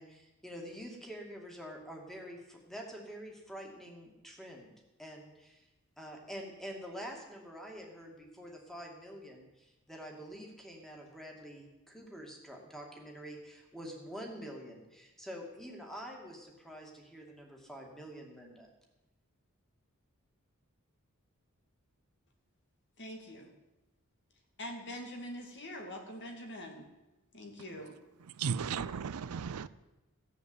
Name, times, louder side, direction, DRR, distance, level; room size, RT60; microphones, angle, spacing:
voice 1, 0.0-4.7 5.0-5.7 6.0-18.7, equal, ahead, 2.5 m, -47 dB
voice 2, 23.0-23.5 24.6-26.9 27.3-27.9, equal, 55° left, 2.6 m, -44 dB
voice 3, 28.2-29.7, right 6 dB, 80° right, 0.5 m, -35 dB
16.0 x 7.4 x 8.0 m
head